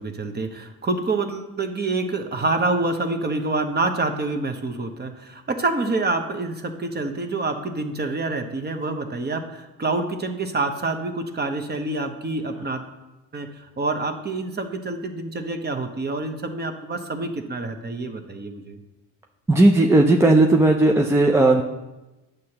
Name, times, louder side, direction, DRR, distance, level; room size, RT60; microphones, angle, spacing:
voice 1, 0.0-12.8 13.3-18.8, right 3 dB, 25° right, 6 dB, 0.9 m, -27 dB
voice 2, 19.5-21.6, right 2 dB, 5° right, 1 dB, 0.4 m, -16 dB
9.2 x 6.6 x 2.9 m, 1.0 s
supercardioid pair, 85°, 40 cm